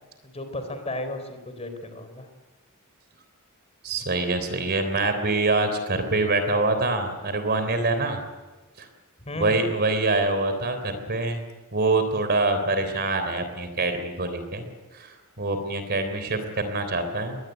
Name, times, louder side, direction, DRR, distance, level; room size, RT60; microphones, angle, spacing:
voice 1, 0.2-2.3 9.2-9.6, left 1 dB, 30° left, 8 dB, 3.8 m, -34 dB
voice 2, 3.8-8.2 8.8-8.9 9.4-11.4 11.7-14.7 14.9-17.4, right 2 dB, 50° right, 8 dB, 3.5 m, -25 dB
22.5 x 19.0 x 9.2 m, 1.2 s
head